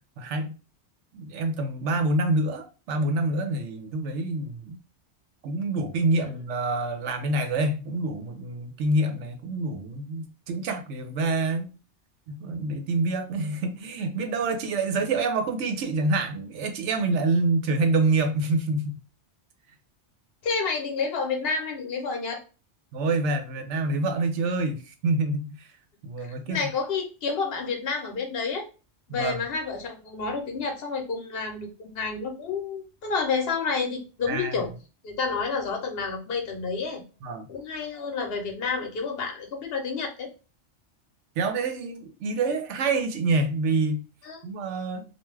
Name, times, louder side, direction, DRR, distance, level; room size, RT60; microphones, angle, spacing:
voice 1, 0.2-0.5 1.1-4.8 5.4-11.7 12.3-19.0 22.9-25.7 26.0-26.7 29.1-29.4 34.3-34.6 37.2-37.5 41.4-44.0 44.4-45.0, right 2 dB, 80° right, 0.9 m, -27 dB
voice 2, 20.4-22.4 26.2-28.6 29.1-34.7 35.0-37.0 37.5-40.3 44.2-44.5, left 4 dB, 60° left, 0.9 m, -30 dB
2.4 x 2.2 x 3.1 m
omnidirectional pair, 1.2 m